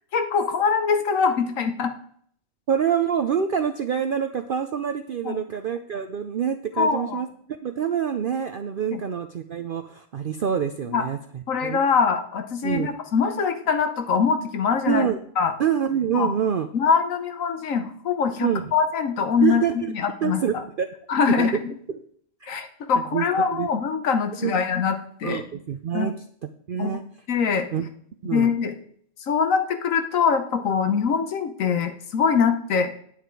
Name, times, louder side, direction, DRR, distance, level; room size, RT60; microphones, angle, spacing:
voice 1, 0.1-1.9 5.2-5.4 6.8-7.2 8.9-9.0 10.9-11.0 11.5-15.1 15.4-15.5 16.1-16.3 16.7-20.4 21.1-21.7 22.5-25.4 25.9-26.1 26.8-27.0 27.3-27.7 28.3-28.7 29.3-32.9, left 6 dB, 80° left, 7 dB, 1.3 m, -23 dB
voice 2, 2.7-7.3 7.6-11.8 12.6-12.9 14.9-15.2 15.6-16.7 18.4-18.7 19.4-19.9 20.2-20.9 21.4-21.5 21.9-22.0 22.4-22.5 23.1-23.3 23.5-23.7 24.4-24.6 25.2-26.1 26.7-27.0 27.7-27.9 28.2-28.5, right 8 dB, 55° right, 8 dB, 0.6 m, -26 dB
9.2 x 8.3 x 4.6 m, 0.63 s
omnidirectional pair, 1.4 m